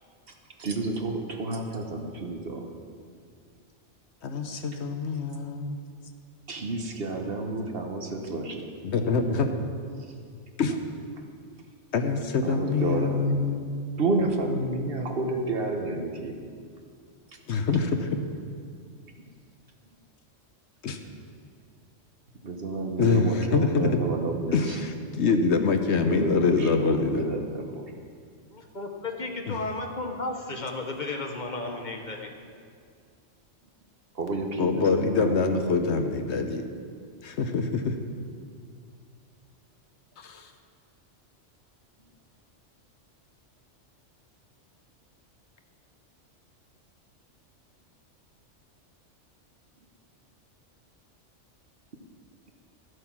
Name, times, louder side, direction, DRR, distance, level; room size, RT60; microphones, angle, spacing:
voice 1, 0.3-2.7 5.3-5.4 6.5-8.7 10.0-10.1 12.4-13.5 14.0-16.3 17.3-17.4 22.4-24.8 26.0-27.9 32.4-32.5 34.1-36.1, right 2 dB, 55° right, 3 dB, 1.2 m, -31 dB
voice 2, 4.2-5.8 8.8-9.5 10.6-10.7 11.9-13.7 17.5-18.2 20.8-21.0 23.0-23.9 24.5-24.7 25.1-27.3 29.5-29.6 34.6-36.7 37.2-37.9 40.2-40.5, left 4 dB, 65° left, 7 dB, 1.0 m, -25 dB
voice 3, 28.5-32.3, left 2 dB, 40° left, 3 dB, 1.0 m, -34 dB
13.0 x 8.0 x 5.9 m, 2.2 s
omnidirectional pair, 1.3 m